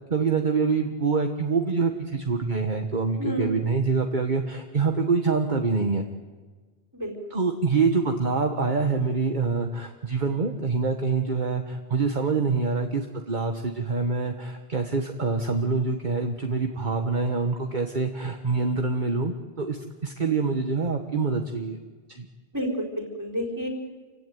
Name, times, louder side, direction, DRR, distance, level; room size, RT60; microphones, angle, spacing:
voice 1, 0.1-6.1 7.3-21.8 22.1-22.2, right 4 dB, 50° right, 4 dB, 1.5 m, -25 dB
voice 2, 3.2-3.5 6.9-7.2 22.5-23.7, equal, 20° right, 1 dB, 4.4 m, -30 dB
28.5 x 16.0 x 9.3 m, 1.4 s
omnidirectional pair, 1.1 m